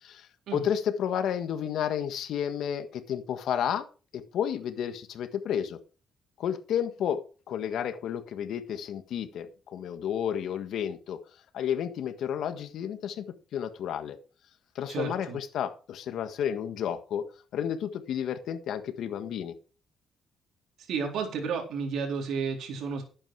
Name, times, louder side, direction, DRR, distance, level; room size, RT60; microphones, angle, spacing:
voice 1, 0.5-3.9 4.1-5.8 6.4-11.2 11.5-13.3 13.5-14.2 14.7-17.2 17.5-19.5, left 9 dB, 75° left, 9 dB, 1.6 m, -31 dB
voice 2, 14.9-15.4 20.9-23.0, right 5 dB, 75° right, 2 dB, 3.9 m, -32 dB
12.0 x 8.9 x 4.8 m, 0.37 s
cardioid pair, 90°, 0 cm